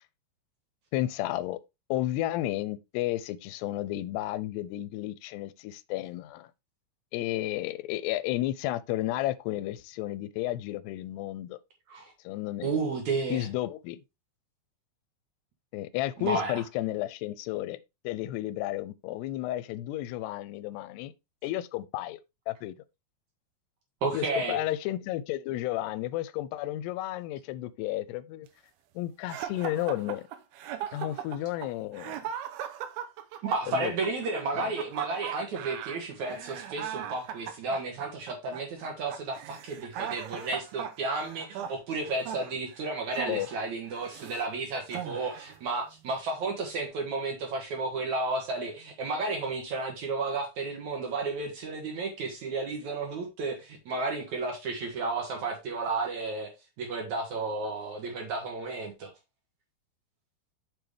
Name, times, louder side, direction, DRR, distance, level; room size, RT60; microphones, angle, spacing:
voice 1, 0.9-1.6 1.9-6.5 7.1-11.6 12.2-12.7 13.3-14.0 15.7-17.8 18.0-21.1 21.4-22.2 22.5-22.7 24.1-28.5 29.0-30.3 30.9-32.2 33.7-33.9 34.6-34.7 43.3-43.5, left 15 dB, 90° left, 2.7 m, -32 dB
voice 2, 12.6-13.5 16.2-16.6 24.0-24.6 33.4-56.5 56.8-59.1, right 3 dB, 60° right, 2.2 m, -32 dB
sound 1, 29.3-44.5 44.9-45.6, right 10 dB, 75° right, 2.5 m, -39 dB
7.0 x 6.0 x 3.3 m
omnidirectional pair, 4.7 m